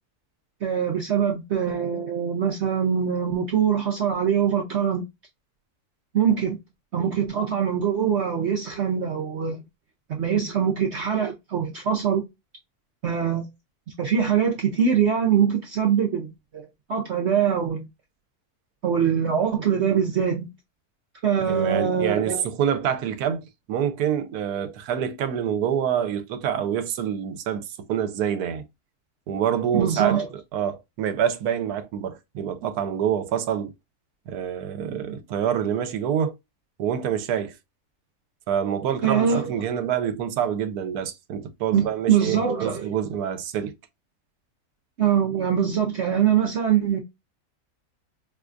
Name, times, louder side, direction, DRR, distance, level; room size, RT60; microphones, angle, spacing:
voice 1, 0.6-5.1 6.1-6.6 6.9-9.6 10.1-12.2 13.0-13.5 14.0-17.9 18.8-20.5 21.2-22.5 29.7-30.3 39.0-39.5 41.7-42.9 45.0-47.0, right 8 dB, 60° right, 0.8 m, -23 dB
voice 2, 21.4-28.7 29.3-30.2 30.5-33.7 34.3-36.3 36.8-37.5 38.5-43.7, right 9 dB, 80° right, 1.1 m, -26 dB
4.7 x 2.2 x 2.5 m
omnidirectional pair, 1.6 m